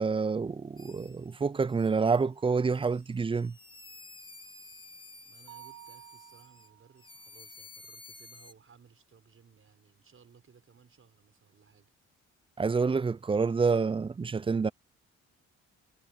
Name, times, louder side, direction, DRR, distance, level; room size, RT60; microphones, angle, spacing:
voice 1, 0.0-3.6 12.6-14.7, right 4 dB, 20° right, 0.4 m, -28 dB
sound 1, 0.8-1.3 1.7-2.2 2.7-6.7 7.0-8.5, left 3 dB, 15° left, 1.5 m, -52 dB
voice 2, 5.2-11.9, right 6 dB, 45° right, 6.2 m, -60 dB
Mallet percussion, 5.5-7.3, right 14 dB, 85° right, 1.5 m, -52 dB
cardioid pair, 90°, 30 cm